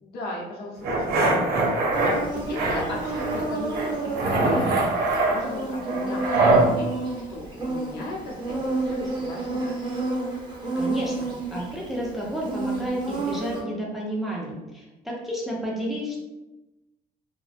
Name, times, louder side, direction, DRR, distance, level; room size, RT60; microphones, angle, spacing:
voice 1, 0.0-4.9 5.3-6.9 7.3-9.7, left 2 dB, 70° left, -3 dB, 0.7 m, -37 dB
sound 1, 0.8-2.1 2.5-3.4 3.7-6.7, right 2 dB, 65° right, 0.7 m, -23 dB
Insect, 1.9-13.6, right 2 dB, 25° right, 0.9 m, -31 dB
voice 2, 10.8-16.2, equal, ahead, -4 dB, 0.5 m, -31 dB
2.4 x 2.1 x 2.4 m, 1.0 s
cardioid pair, 110°, 17 cm